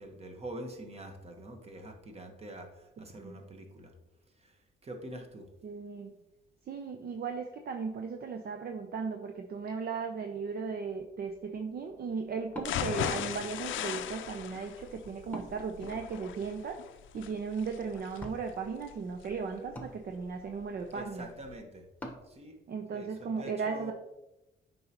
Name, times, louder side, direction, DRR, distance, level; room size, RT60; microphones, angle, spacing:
voice 1, 0.0-3.9 4.4-4.5 4.8-5.5 20.9-21.8 22.3-22.6 22.9-23.9, right 1 dB, 30° right, 4 dB, 1.3 m, -45 dB
voice 2, 5.6-6.1 6.7-16.8 17.1-21.3 22.7-23.9, right 5 dB, 50° right, 5 dB, 0.6 m, -36 dB
Wood, 10.8-22.3, left 1 dB, 10° left, 1.2 m, -51 dB
sound 1, 12.6-20.6 21.0-21.1 21.4-21.5, left 9 dB, 75° left, 0.5 m, -38 dB
7.7 x 5.4 x 3.0 m, 0.96 s
cardioid pair, 90°, 20 cm